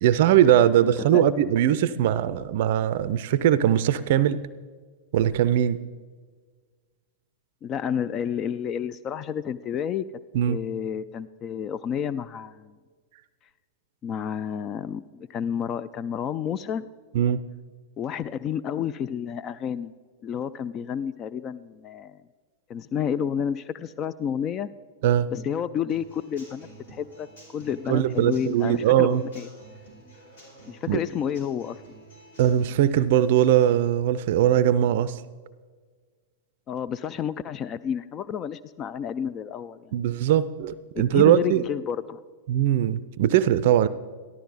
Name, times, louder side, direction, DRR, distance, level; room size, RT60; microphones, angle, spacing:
voice 1, 0.0-4.4 5.1-5.8 10.3-10.6 17.1-17.4 25.0-25.3 27.9-29.2 30.9-31.0 32.4-35.2 39.9-41.7 42.5-43.9, right 11 dB, 55° right, 16 dB, 0.4 m, -21 dB
voice 2, 0.8-1.2 7.6-10.0 10.5-12.7 14.0-16.9 18.0-19.9 20.2-22.2 22.7-24.7 25.3-27.3 27.5-29.1 29.4-29.5 30.7-31.8 36.7-40.0 40.9-42.2, left 8 dB, 35° left, 15 dB, 0.3 m, -30 dB
Human voice / Acoustic guitar / Drum, 25.9-33.9, right 3 dB, 70° left, 4.7 m, -50 dB
14.0 x 12.0 x 4.0 m, 1.5 s
figure-of-eight pair, 95°, 0 cm